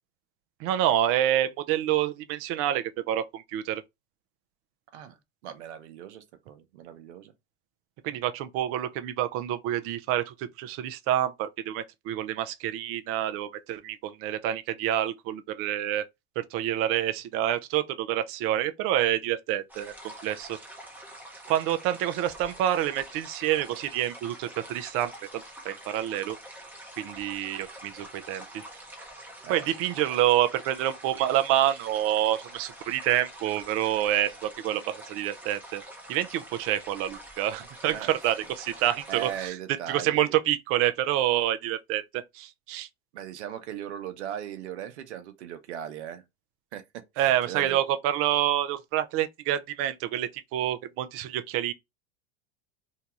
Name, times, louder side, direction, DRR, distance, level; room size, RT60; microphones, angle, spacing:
voice 1, 0.6-3.8 8.0-16.0 16.4-19.9 20.2-20.6 21.5-26.4 27.0-28.6 29.5-35.8 36.1-39.6 39.9-42.9 47.2-51.7, right 12 dB, 45° right, 0.5 m, -27 dB
voice 2, 5.4-7.3 29.4-29.7 37.9-38.1 38.8-40.3 43.1-46.2 46.7-46.8 47.1-47.8, right 10 dB, 85° right, 0.8 m, -38 dB
sound 1, 19.7-39.5, right 1 dB, 5° right, 0.7 m, -46 dB
2.8 x 2.2 x 2.8 m
supercardioid pair, 115°, 33 cm